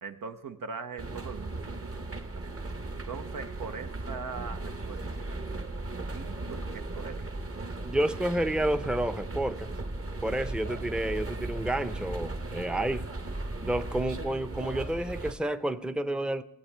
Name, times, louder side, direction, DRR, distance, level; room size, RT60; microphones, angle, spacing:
voice 1, 0.0-2.5 3.1-5.4 6.1-7.4, right 5 dB, 75° right, 0.7 m, -41 dB
sound 1, 1.0-15.3, right 2 dB, 40° right, 1.1 m, -37 dB
voice 2, 7.8-9.7 10.2-13.1 13.6-16.4, right 1 dB, 5° right, 0.6 m, -30 dB
17.0 x 8.6 x 3.4 m
cardioid pair, 40°, 33 cm